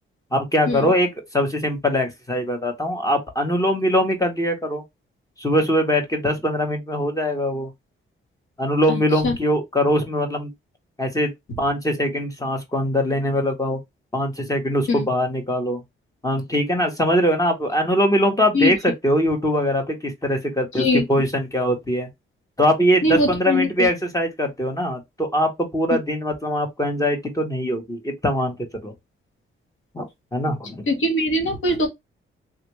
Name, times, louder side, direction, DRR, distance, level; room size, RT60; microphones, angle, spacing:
voice 1, 0.3-1.1 1.3-4.8 5.4-7.7 8.6-10.5 11.0-11.3 11.6-13.8 14.1-15.8 16.2-22.1 22.6-28.9 29.9-30.9, equal, 15° left, 1.0 m, -22 dB
voice 2, 8.9-9.3 14.9-15.1 18.5-18.7 20.7-21.0 23.0-23.9 30.9-31.9, left 1 dB, 70° left, 1.4 m, -21 dB
3.5 x 2.5 x 3.0 m
cardioid pair, 120°, 21 cm